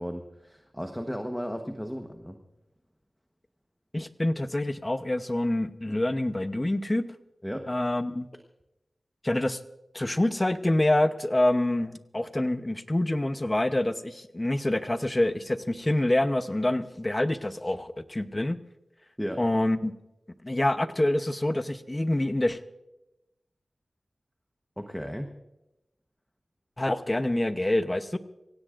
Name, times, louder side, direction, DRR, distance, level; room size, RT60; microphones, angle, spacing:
voice 1, 0.0-2.4 7.4-7.7 19.2-19.4 24.8-25.3, equal, ahead, 4 dB, 1.1 m, -35 dB
voice 2, 3.9-7.0 7.7-8.3 9.2-9.6 9.9-18.6 19.4-19.9 20.4-22.6 26.8-28.2, left 1 dB, 25° left, 10 dB, 0.8 m, -26 dB
26.0 x 16.5 x 2.5 m, 0.94 s
wide cardioid pair, 80°, 0 cm